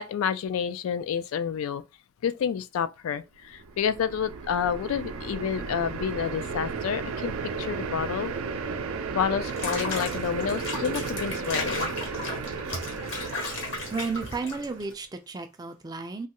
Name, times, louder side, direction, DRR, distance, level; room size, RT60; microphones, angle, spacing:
voice 1, 0.0-1.8 2.2-7.3 7.6-8.3 9.1-11.9, left 7 dB, 80° left, 0.3 m, -29 dB
sound 1, 3.5-14.9, right 5 dB, 90° right, 0.5 m, -34 dB
Water / Bathtub (filling or washing), 9.4-14.9, left 3 dB, 65° left, 1.1 m, -35 dB
voice 2, 13.9-16.3, right 4 dB, 20° right, 0.3 m, -33 dB
3.0 x 2.3 x 2.9 m
head